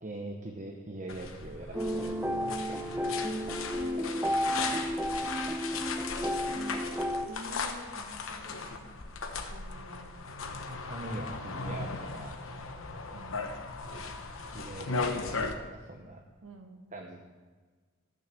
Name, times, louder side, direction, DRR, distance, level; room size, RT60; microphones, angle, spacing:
voice 1, 0.0-3.5 10.6-12.4 14.5-16.2 16.9-17.2, right 2 dB, 35° right, 1 dB, 0.9 m, -43 dB
sound 1, 1.1-15.5, left 4 dB, 65° left, 1.0 m, -37 dB
sound 2, 1.7-7.3, equal, 10° right, 0.6 m, -32 dB
voice 2, 3.3-5.5 6.5-9.0 9.5-10.2 13.0-13.6 16.4-16.8, right 1 dB, 70° right, 4 dB, 1.5 m, -49 dB
14.0 x 6.4 x 6.8 m, 1.4 s
head